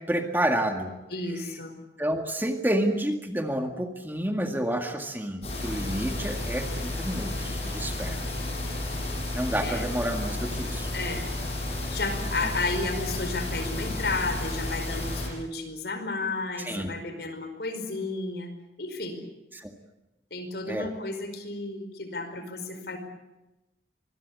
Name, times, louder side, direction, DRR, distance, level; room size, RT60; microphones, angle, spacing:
voice 1, 0.1-0.9 2.0-8.2 9.3-10.9 16.6-16.9 19.5-19.7 20.7-20.9, right 1 dB, 10° right, 5 dB, 1.9 m, -29 dB
voice 2, 1.1-1.8 9.6-9.8 10.9-11.3 11.9-18.5 18.8-19.2 20.3-23.0, left 3 dB, 70° left, 8 dB, 4.9 m, -32 dB
sound 1, 5.4-15.3, left 1 dB, 35° left, 7.4 m, -32 dB
24.5 x 22.0 x 8.4 m, 0.99 s
head